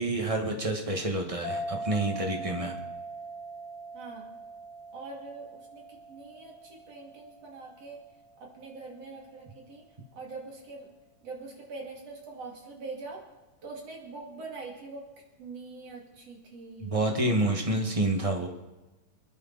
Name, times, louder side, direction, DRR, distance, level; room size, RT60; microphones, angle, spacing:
voice 1, 0.0-2.8 16.8-18.5, right 2 dB, 25° right, 2 dB, 0.8 m, -28 dB
sound 1, 1.4-8.5, right 2 dB, 45° right, 6.6 m, -41 dB
voice 2, 3.9-4.2 4.9-8.0 8.4-9.9 10.2-10.9 11.2-13.2 13.6-15.0 15.4-17.0, right 3 dB, 60° right, -1 dB, 3.6 m, -43 dB
26.5 x 9.9 x 4.1 m, 1.1 s
omnidirectional pair, 3.3 m